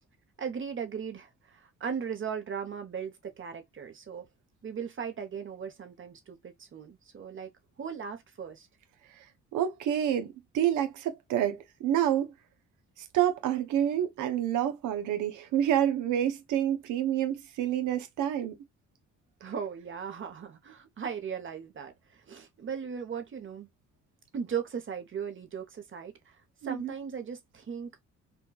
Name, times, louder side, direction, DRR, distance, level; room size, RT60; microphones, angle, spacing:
voice 1, 0.4-4.3 4.6-7.5 7.8-8.7 19.4-23.7 24.3-26.4 26.6-28.0, right 7 dB, 40° right, 1.0 m, -38 dB
voice 2, 9.5-12.3 13.0-18.5 26.6-26.9, right 10 dB, 85° right, 0.7 m, -28 dB
4.3 x 2.3 x 2.3 m
cardioid pair, 90°, 30 cm